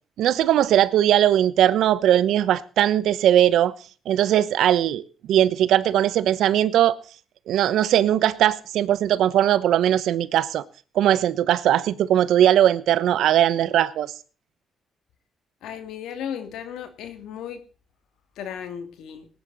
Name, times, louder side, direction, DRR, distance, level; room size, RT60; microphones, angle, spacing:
voice 1, 0.2-3.7 4.1-5.0 5.3-6.9 7.5-10.6 10.9-14.1, right 11 dB, 80° right, 1.0 m, -19 dB
voice 2, 15.6-17.6 18.4-19.3, left 8 dB, 85° left, 2.4 m, -35 dB
19.5 x 10.5 x 4.0 m
cardioid pair, 90°, 0 cm